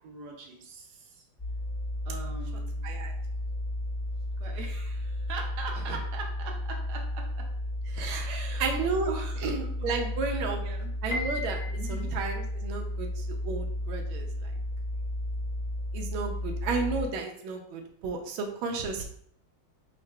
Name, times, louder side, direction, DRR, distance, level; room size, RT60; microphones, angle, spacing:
voice 1, 0.0-1.3 2.1-3.0 4.4-7.5 8.2-8.8 9.1-9.9 10.2-10.9 11.7-12.1, right 4 dB, 65° right, 1 dB, 1.1 m, -41 dB
sound 1, 1.4-17.1, left 1 dB, 10° right, 1.4 m, -33 dB
voice 2, 7.9-8.3 8.6-9.1 9.4-10.6 11.0-11.6 11.9-14.3 15.9-19.0, right 4 dB, 90° right, 2 dB, 1.4 m, -32 dB
Piano, 11.1-12.4, left 2 dB, 80° left, 0.6 m, -36 dB
4.6 x 3.7 x 2.2 m, 0.64 s
omnidirectional pair, 2.2 m